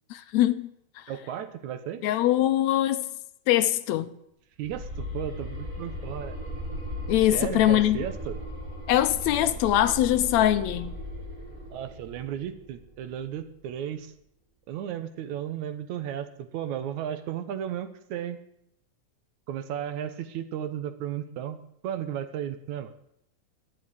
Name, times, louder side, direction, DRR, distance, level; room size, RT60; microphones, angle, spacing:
voice 1, 0.1-0.7 1.0-1.1 2.0-3.1 3.5-4.1 7.1-8.0 8.9-10.9, left 13 dB, 75° left, 1.9 m, -23 dB
voice 2, 1.1-2.0 4.6-6.4 7.3-8.4 11.7-14.1 14.7-18.4 19.5-21.6 21.8-22.9, right 10 dB, 80° right, 2.4 m, -34 dB
sound 1, 4.6-13.5, equal, 10° right, 7.9 m, -37 dB
12.0 x 10.5 x 9.4 m
omnidirectional pair, 3.3 m